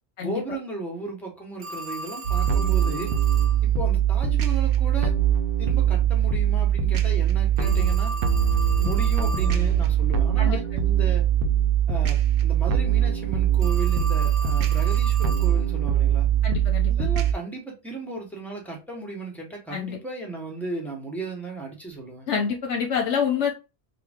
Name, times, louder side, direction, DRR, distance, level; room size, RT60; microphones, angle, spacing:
voice 1, 0.2-3.1 3.6-5.1 5.6-8.1 8.7-11.3 11.9-16.3 16.9-22.3, right 3 dB, ahead, 1.0 m, -35 dB
Telephone, 1.6-3.6 7.6-9.6 13.6-15.6, equal, 75° right, 1.0 m, -36 dB
sound 1, 2.2-17.3, right 9 dB, 60° right, 0.7 m, -22 dB
voice 2, 16.4-17.1 19.7-20.0 22.3-23.5, left 7 dB, 80° left, 1.0 m, -27 dB
3.0 x 2.5 x 3.5 m
omnidirectional pair, 1.2 m